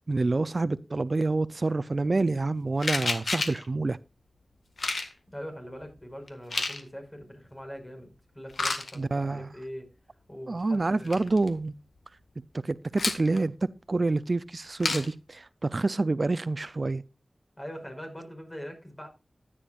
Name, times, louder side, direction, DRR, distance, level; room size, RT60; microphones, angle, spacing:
voice 1, 0.1-4.0 9.0-9.5 10.5-11.8 12.6-13.5 13.9-17.0, right 3 dB, 55° right, 0.4 m, -27 dB
sound 1, 2.8-3.6 4.8-5.1 6.3-6.8 8.5-9.0 10.7-10.8 11.0-11.5 13.0-13.4 14.8-15.1, left 3 dB, 85° left, 1.7 m, -29 dB
voice 2, 5.3-9.9 10.3-11.2 17.6-19.1, equal, 25° left, 5.1 m, -42 dB
14.5 x 10.0 x 2.5 m
wide cardioid pair, 55°, 0 cm